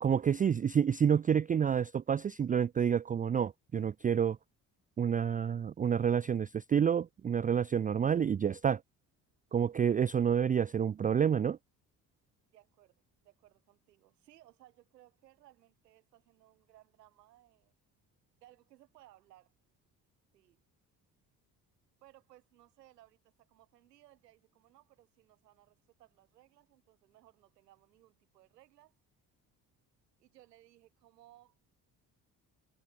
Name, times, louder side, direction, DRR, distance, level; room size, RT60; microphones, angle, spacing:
voice 1, 0.0-4.4 5.0-8.8 9.5-11.6, right 8 dB, 20° right, 0.4 m, -29 dB
voice 2, 12.5-17.7 18.4-19.5 20.3-20.6 22.0-28.9 30.2-31.6, right 14 dB, 85° right, 6.3 m, -62 dB
hypercardioid pair, 50°, 47 cm